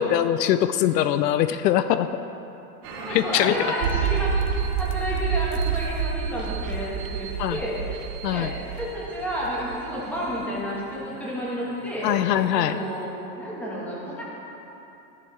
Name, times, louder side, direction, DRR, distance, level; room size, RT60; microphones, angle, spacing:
voice 1, 0.0-2.1 3.1-3.6 7.4-7.6 8.2-8.5 12.0-12.8, left 11 dB, 75° left, 11 dB, 0.6 m, -22 dB
sound 1, 2.8-13.0, right 5 dB, 40° right, 2.3 m, -43 dB
voice 2, 3.0-4.3 4.8-7.8 8.3-12.2 12.5-13.1 13.4-14.2, equal, 5° left, -6 dB, 1.4 m, -31 dB
sound 2, 3.8-10.3 10.6-10.7, right 7 dB, 80° right, 1.2 m, -28 dB
14.0 x 11.0 x 3.2 m, 3.0 s
supercardioid pair, 170°, 50 cm